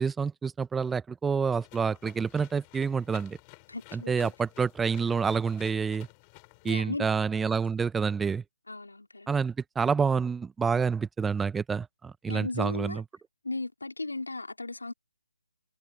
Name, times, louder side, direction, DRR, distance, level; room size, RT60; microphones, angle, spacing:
voice 1, 0.0-3.4 3.9-6.1 6.6-8.4 9.3-13.0, right 5 dB, 5° right, 0.8 m, -28 dB
sound 1, 1.5-6.8, left 34 dB, 20° left, 7.1 m, -53 dB
voice 2, 3.7-4.3 6.6-7.1 8.7-9.3 12.3-13.0 13.4-14.9, left 2 dB, 80° left, 2.9 m, -36 dB
figure-of-eight pair, 150°, 0 cm